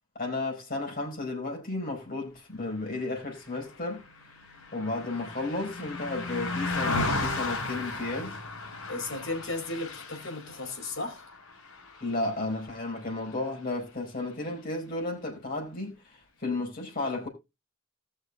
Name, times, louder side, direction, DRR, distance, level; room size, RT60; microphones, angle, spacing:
voice 1, 0.1-4.3 4.7-8.4 12.0-17.3, left 2 dB, 45° left, 4.8 m, -33 dB
Car passing by, 3.3-12.9 13.3-13.5, left 2 dB, 90° left, 3.6 m, -35 dB
voice 2, 8.9-11.2, left 2 dB, 65° left, 4.3 m, -35 dB
19.5 x 6.5 x 2.3 m
head